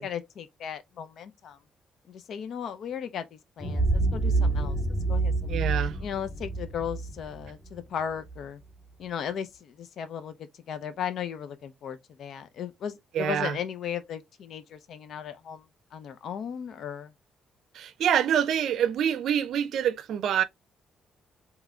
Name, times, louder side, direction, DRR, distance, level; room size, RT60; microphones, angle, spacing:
voice 1, 0.0-1.6 2.1-4.8 5.1-5.6 6.0-8.6 9.0-15.6 15.9-17.1, left 8 dB, 70° left, 0.6 m, -36 dB
sound 1, 3.6-8.4, right 3 dB, 10° right, 2.0 m, -27 dB
voice 2, 5.5-6.0 13.1-13.6 17.7-20.4, right 9 dB, 75° right, 0.5 m, -26 dB
3.6 x 3.1 x 3.3 m
cardioid pair, 90°, 0 cm